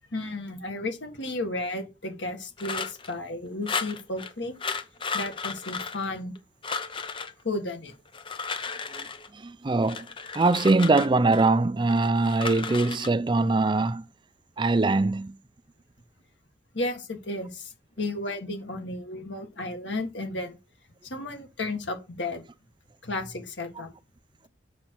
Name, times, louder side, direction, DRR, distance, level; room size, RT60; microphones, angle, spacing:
voice 1, 0.1-4.5 5.1-6.4 7.4-7.9 16.7-20.6 21.0-22.4 23.0-23.9, left 2 dB, 80° left, 1.8 m, -33 dB
sound 1, 2.6-3.1 3.7-4.3 4.6-6.4 6.6-7.3 8.1-9.3 9.8-11.5 11.9-13.1, left 5 dB, 30° left, 0.6 m, -34 dB
voice 2, 9.3-10.1 10.3-14.1 14.6-15.4, right 3 dB, 25° right, 0.4 m, -22 dB
7.3 x 5.3 x 4.6 m
head